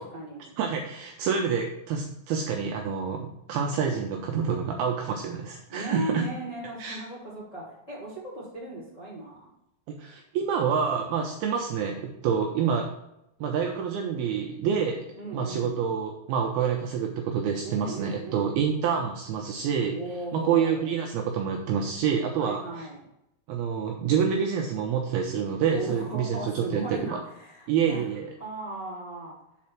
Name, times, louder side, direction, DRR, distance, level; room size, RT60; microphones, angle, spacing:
voice 1, 0.0-0.5 5.7-9.5 15.2-15.8 17.6-18.5 19.9-20.9 22.4-23.1 25.7-28.1 28.4-29.4, right 2 dB, 25° left, -6 dB, 2.1 m, -37 dB
voice 2, 0.6-6.2 6.8-7.0 10.0-12.9 13.4-15.1 15.3-20.0 20.3-22.9 23.5-27.0 27.7-28.3, right 7 dB, 80° right, 2 dB, 2.3 m, -27 dB
7.5 x 4.3 x 5.8 m, 0.84 s
omnidirectional pair, 5.0 m